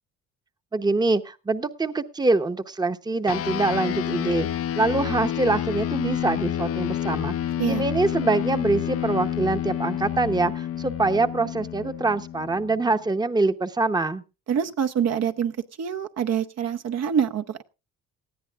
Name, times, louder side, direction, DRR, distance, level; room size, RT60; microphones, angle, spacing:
voice 1, 0.7-4.5 4.8-7.3 7.7-14.2, right 3 dB, 15° right, 10 dB, 0.8 m, -24 dB
sound 1, 3.3-13.0, left 11 dB, 50° left, 0.5 m, -29 dB
voice 2, 14.5-17.6, right 8 dB, 60° right, 7 dB, 0.9 m, -25 dB
19.0 x 14.0 x 2.4 m, 0.30 s
cardioid pair, 90°, 30 cm